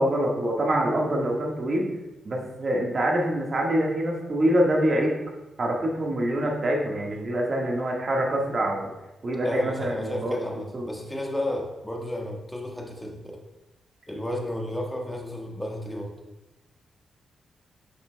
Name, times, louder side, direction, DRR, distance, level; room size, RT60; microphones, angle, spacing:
voice 1, 0.0-1.9 2.2-5.1 5.6-8.9 9.2-10.3 10.7-10.9, right 1 dB, 50° right, -1 dB, 1.5 m, -25 dB
voice 2, 9.4-13.4 14.1-16.1, left 1 dB, 10° left, 0 dB, 1.4 m, -32 dB
8.2 x 5.8 x 2.2 m, 0.98 s
cardioid pair, 65°, 0 cm